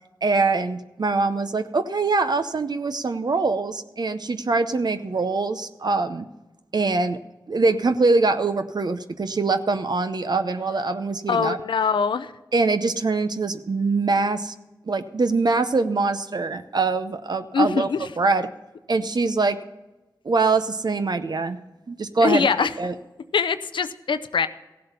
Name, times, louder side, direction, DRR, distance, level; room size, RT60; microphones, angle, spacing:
voice 1, 0.2-6.3 6.7-7.2 7.5-11.6 12.5-14.5 14.9-17.9 18.2-18.5 18.9-19.6 20.2-21.6 21.9-22.5 22.8-22.9, right 3 dB, 60° right, 9 dB, 0.7 m, -23 dB
voice 2, 11.3-12.3 17.5-18.0 22.2-22.7 23.3-24.5, left 5 dB, 85° left, 11 dB, 0.6 m, -22 dB
15.5 x 7.7 x 5.5 m, 1.1 s
cardioid pair, 40°, 8 cm